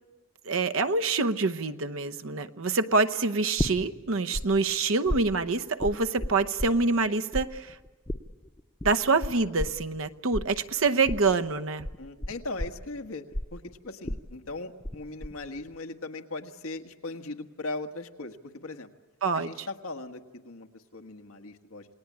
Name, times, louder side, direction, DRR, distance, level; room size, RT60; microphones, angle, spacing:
voice 1, 0.5-7.8 8.8-11.9 19.2-19.7, right 3 dB, 75° right, 9 dB, 0.9 m, -26 dB
sound 1, 3.6-4.4 4.7-7.1 7.3-15.0 15.2-15.7, left 1 dB, 20° left, 0.8 m, -33 dB
voice 2, 12.0-13.3 13.5-18.9 19.3-21.9, left 2 dB, 90° left, 5 dB, 1.6 m, -39 dB
28.5 x 20.0 x 8.7 m, 1.2 s
head